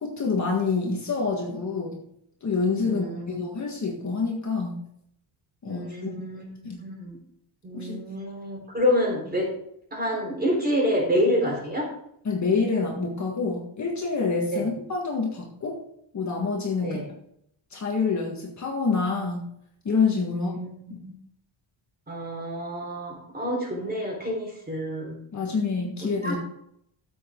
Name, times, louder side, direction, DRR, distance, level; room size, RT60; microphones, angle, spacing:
voice 1, 0.0-2.0 2.4-4.8 5.6-6.1 6.6-6.8 7.7-8.0 12.3-15.8 16.1-17.0 17.7-19.5 19.9-20.6 20.9-21.0 25.3-26.4, left 4 dB, 35° left, -1 dB, 1.7 m, -27 dB
voice 2, 2.8-3.3 5.7-6.5 6.8-7.2 7.6-9.5 9.9-11.9 14.5-14.7 16.8-17.1 20.3-20.7 21.0-21.1 22.1-25.2 26.2-26.3, equal, 20° right, -1 dB, 4.2 m, -27 dB
14.0 x 7.9 x 3.8 m, 0.72 s
wide cardioid pair, 175°, 48 cm